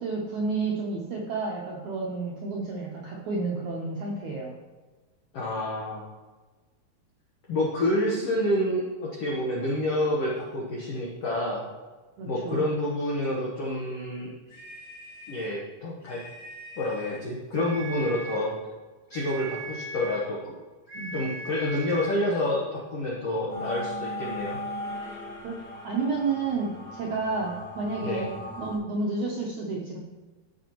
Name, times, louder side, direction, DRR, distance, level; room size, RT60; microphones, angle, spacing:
voice 1, 0.0-4.6 12.2-12.6 20.9-21.1 25.4-25.6 25.8-28.3 28.6-30.0, right 3 dB, 75° right, -2 dB, 1.7 m, -30 dB
voice 2, 5.3-6.0 7.5-11.7 12.2-14.3 15.3-16.2 16.8-18.5 19.1-20.5 21.1-24.6 28.0-28.2, left 1 dB, 75° left, -4 dB, 1.4 m, -28 dB
sound 1, 14.5-15.6 16.0-17.3 17.5-18.5 19.1-20.3 20.9-22.2, right 2 dB, 25° left, 1.1 m, -40 dB
sound 2, 23.5-28.8, left 1 dB, 60° left, 3.6 m, -38 dB
14.0 x 5.9 x 3.0 m, 1.3 s
omnidirectional pair, 4.6 m